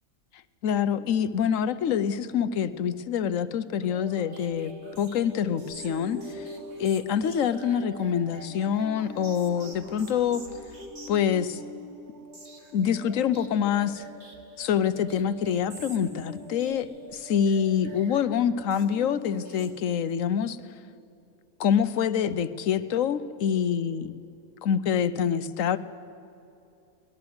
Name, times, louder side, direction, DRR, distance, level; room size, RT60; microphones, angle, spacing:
voice 1, 0.6-4.7 5.0-6.5 6.8-10.4 11.1-11.6 12.7-14.0 14.6-16.9 17.1-20.6 21.6-24.1 24.6-25.8, left 8 dB, 65° left, 13 dB, 1.1 m, -26 dB
sound 1, 3.8-20.3, equal, 45° right, 2.2 m, -44 dB
22.5 x 19.5 x 7.9 m, 2.8 s
omnidirectional pair, 1.6 m